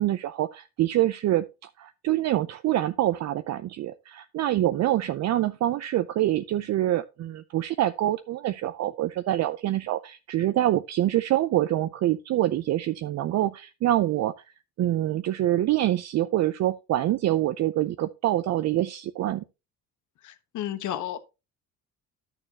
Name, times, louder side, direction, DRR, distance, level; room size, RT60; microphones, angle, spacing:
voice 1, 0.0-14.3 14.8-19.4, right 14 dB, 55° right, 0.5 m, -25 dB
voice 2, 20.2-21.2, left 11 dB, 60° left, 1.1 m, -32 dB
11.0 x 6.6 x 2.9 m
cardioid pair, 90°, 33 cm